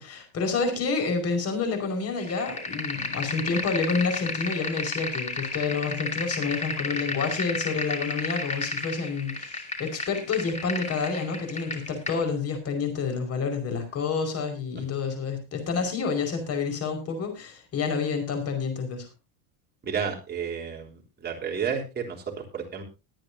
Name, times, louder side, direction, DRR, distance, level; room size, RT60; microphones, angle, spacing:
voice 1, 0.0-19.1, left 5 dB, 35° left, 6 dB, 5.2 m, -29 dB
sound 1, 2.2-12.2, left 3 dB, 15° left, 2.6 m, -33 dB
voice 2, 19.8-22.8, right 6 dB, 25° right, 1 dB, 3.6 m, -31 dB
22.0 x 9.0 x 2.7 m, 0.27 s
cardioid pair, 150°, 42 cm